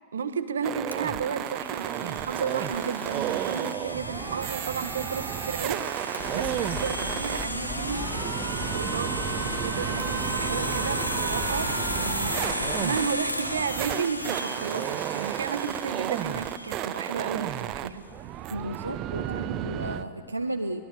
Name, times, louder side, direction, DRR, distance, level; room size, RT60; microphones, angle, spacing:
voice 1, 0.1-18.1 19.2-19.5, right 6 dB, 70° right, 11 dB, 1.1 m, -33 dB
sound 1, 0.6-20.0, right 13 dB, 35° right, 0.6 m, -33 dB
Domestic sounds home sounds, 0.9-17.7, left 1 dB, 85° left, 1.2 m, -35 dB
sound 2, 6.2-12.9, left 2 dB, 50° left, 6.6 m, -37 dB
voice 2, 18.5-20.8, right 1 dB, 85° right, 5 dB, 0.7 m, -33 dB
22.5 x 21.0 x 7.2 m, 2.3 s
figure-of-eight pair, 90°, 0 cm